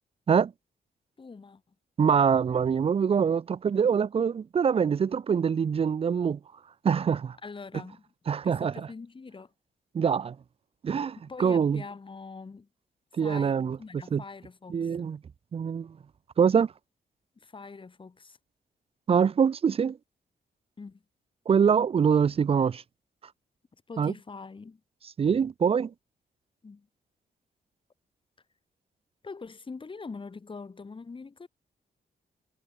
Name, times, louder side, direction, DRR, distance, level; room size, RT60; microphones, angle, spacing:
voice 1, 1.2-1.7 7.4-8.1 8.4-9.5 11.3-12.7 13.2-15.1 17.3-18.4 20.8-21.0 23.9-24.8 26.6-26.9 29.2-31.5, left 4 dB, 30° left, 2.9 m, -43 dB
voice 2, 2.0-6.4 6.8-7.4 8.3-8.7 9.9-10.4 10.8-11.8 13.2-13.8 14.1-14.2 14.7-15.2 15.5-15.9 16.4-16.7 19.1-20.0 21.5-22.8 24.0-24.1 25.2-25.9, right 7 dB, 35° right, 0.5 m, -24 dB
cardioid pair, 110°, 16 cm